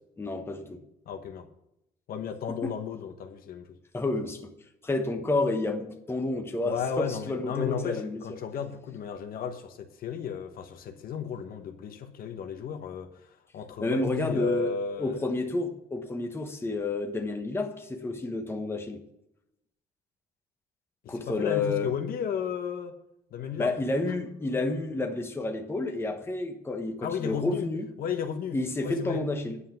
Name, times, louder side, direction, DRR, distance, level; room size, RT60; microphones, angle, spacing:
voice 1, 0.2-0.8 2.6-2.7 3.9-4.5 4.8-8.2 13.8-19.0 21.1-21.9 23.6-27.9 28.5-29.6, left 2 dB, 15° left, 1.1 m, -30 dB
voice 2, 1.1-1.5 2.1-3.8 6.6-15.3 21.0-23.0 23.3-23.8 27.0-27.7 28.0-29.3, left 7 dB, 60° left, 1.1 m, -34 dB
9.8 x 5.6 x 6.8 m
cardioid pair, 110°, 17 cm